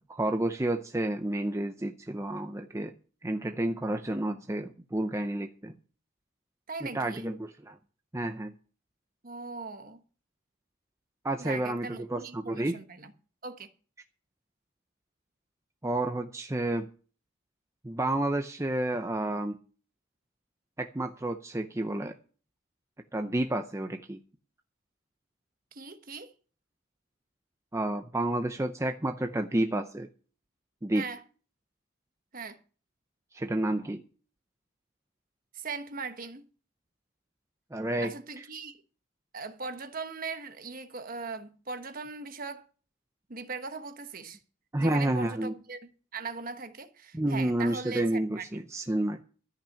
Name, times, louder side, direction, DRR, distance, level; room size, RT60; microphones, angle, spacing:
voice 1, 0.1-2.9 3.2-5.7 6.8-7.8 8.1-8.5 11.2-12.8 15.8-16.9 17.8-19.6 20.8-22.1 23.1-24.2 27.7-30.1 30.8-31.0 33.3-34.0 37.7-38.4 44.7-45.5 47.1-49.2, right 1 dB, 15° right, 0.6 m, -30 dB
voice 2, 6.7-7.3 9.2-10.0 11.4-13.1 13.4-13.7 25.7-26.3 30.9-31.2 32.3-32.6 35.5-36.4 38.0-38.8 39.3-42.7 43.3-44.4 44.8-48.5, right 4 dB, 40° right, 1.2 m, -39 dB
13.5 x 6.0 x 8.5 m
head